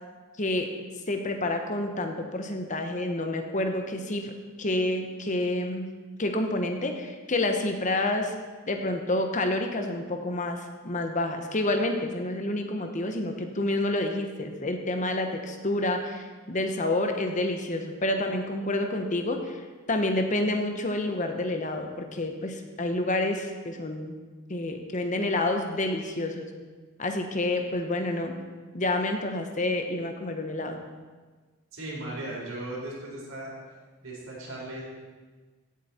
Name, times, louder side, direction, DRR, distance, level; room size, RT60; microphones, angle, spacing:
voice 1, 0.4-0.7 1.1-4.3 4.6-5.9 6.2-8.3 8.7-19.6 19.9-24.1 24.5-26.5 27.0-28.3 28.7-30.8, left 1 dB, 35° left, 5 dB, 1.0 m, -28 dB
voice 2, 31.7-33.5 34.0-34.8, right 1 dB, 75° right, -4 dB, 4.2 m, -37 dB
16.5 x 7.9 x 4.4 m, 1.4 s
head